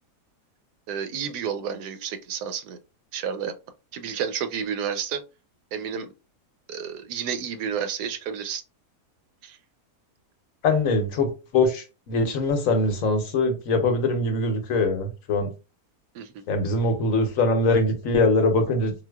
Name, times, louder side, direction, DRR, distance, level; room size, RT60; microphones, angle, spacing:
voice 1, 0.9-2.8 3.1-3.5 3.9-5.2 5.7-6.1 6.7-8.6 9.4-9.6 16.1-16.4, right 7 dB, 90° right, 1.2 m, -31 dB
voice 2, 10.6-11.3 11.5-15.5 16.5-18.9, left 2 dB, 65° left, 1.0 m, -22 dB
3.9 x 2.5 x 2.2 m
omnidirectional pair, 1.7 m